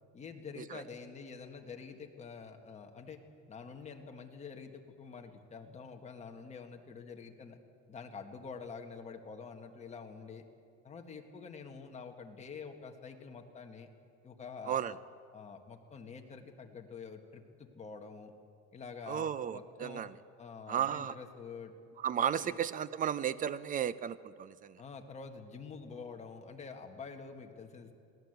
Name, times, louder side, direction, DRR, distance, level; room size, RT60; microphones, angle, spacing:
voice 1, 0.1-3.2 3.5-7.6 7.9-10.5 10.8-13.9 14.2-15.0 15.3-18.3 18.7-20.1 20.4-21.7 22.4-22.6 24.8-27.9, left 5 dB, 25° left, 3 dB, 1.6 m, -47 dB
voice 2, 19.1-20.1 20.7-21.1 22.0-24.8, right 9 dB, 30° right, 17 dB, 0.5 m, -34 dB
22.0 x 17.0 x 8.0 m, 2.3 s
cardioid pair, 160°, 29 cm